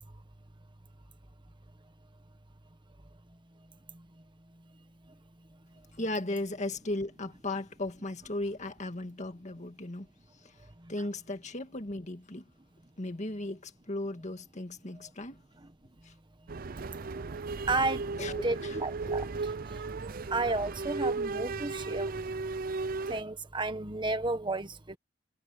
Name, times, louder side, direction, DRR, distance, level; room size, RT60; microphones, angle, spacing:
voice 1, 6.0-10.1 10.4-12.4 13.0-15.4 16.0-16.1 18.2-19.1, left 2 dB, 40° left, 1.9 m, -37 dB
sound 1, 16.5-23.2, right 3 dB, 50° right, 0.5 m, -35 dB
voice 2, 17.7-18.1 18.4-19.3 19.7-19.8 20.3-22.1 23.1-25.0, right 2 dB, 25° right, 1.5 m, -32 dB
head